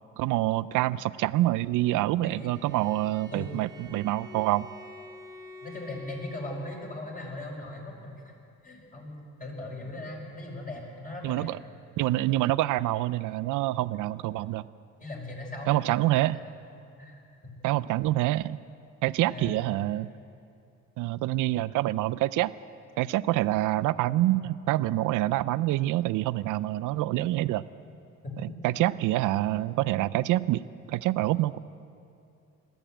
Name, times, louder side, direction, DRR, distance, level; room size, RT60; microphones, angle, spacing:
voice 1, 0.2-4.7 11.2-11.6 12.0-14.6 15.7-16.4 17.6-18.6 19.0-20.1 21.0-22.5 23.0-27.6 28.4-31.6, right 16 dB, 90° right, 17 dB, 0.5 m, -26 dB
Bowed string instrument, 2.3-7.1, left 1 dB, 10° right, 1.9 m, -48 dB
voice 2, 5.6-8.3 8.6-11.5 15.0-16.0 16.3-16.5 17.0-17.2 19.3-19.8 24.1-24.4 28.2-28.5, left 2 dB, 30° left, -1 dB, 5.9 m, -39 dB
21.0 x 14.0 x 9.0 m, 2.6 s
cardioid pair, 90°, 30 cm